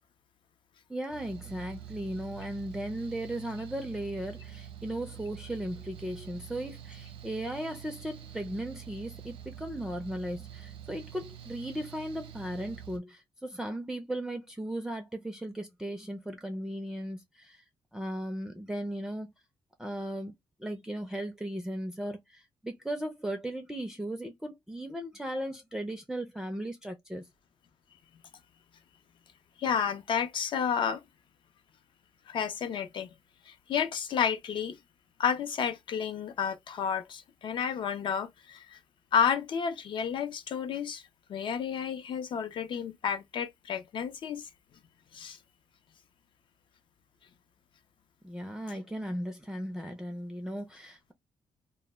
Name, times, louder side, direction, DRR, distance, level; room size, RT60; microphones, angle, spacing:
voice 1, 0.9-17.6 17.9-19.3 19.8-20.3 20.6-27.3 48.2-51.1, right 1 dB, 5° right, 0.4 m, -37 dB
Mechanical fan, 1.1-13.0, right 10 dB, 80° right, 0.6 m, -46 dB
voice 2, 29.6-31.0 32.3-33.1 33.5-34.8 35.2-38.8 39.1-41.0 41.3-44.5 45.1-45.4, left 7 dB, 60° left, 0.5 m, -31 dB
2.1 x 2.0 x 3.3 m
cardioid pair, 120°, 9 cm